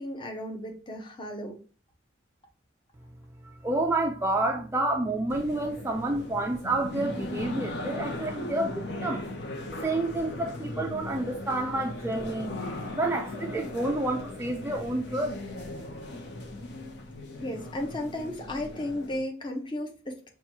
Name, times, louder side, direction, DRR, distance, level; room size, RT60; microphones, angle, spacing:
voice 1, 0.0-1.6 17.4-20.2, left 1 dB, 25° left, 0.7 m, -34 dB
voice 2, 3.6-9.2 9.8-12.5 12.9-15.4, right 2 dB, 15° right, 0.3 m, -29 dB
sound 1, 5.3-19.2, left 2 dB, 60° left, 0.8 m, -38 dB
5.7 x 2.3 x 2.9 m
head